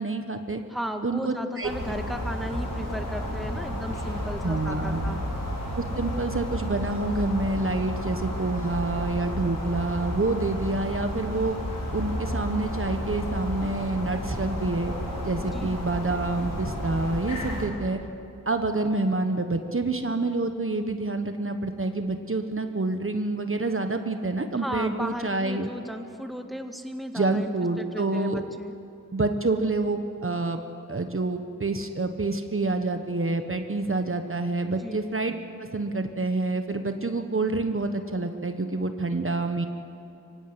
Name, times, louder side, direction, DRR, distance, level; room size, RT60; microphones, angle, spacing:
voice 1, 0.0-0.6 1.0-1.7 4.4-5.2 5.8-11.6 11.9-14.9 15.2-18.0 18.5-25.7 27.1-28.4 29.1-30.6 30.9-35.3 35.7-39.7, right 2 dB, 40° right, 6 dB, 1.3 m, -27 dB
voice 2, 0.7-5.2 15.5-15.8 24.6-27.5 27.8-28.8 34.8-35.0, equal, ahead, 5 dB, 1.8 m, -35 dB
sound 1, 1.6-17.7, equal, 70° left, 5.2 m, -32 dB
23.5 x 17.0 x 9.7 m, 2.7 s
wide cardioid pair, 70°, 34 cm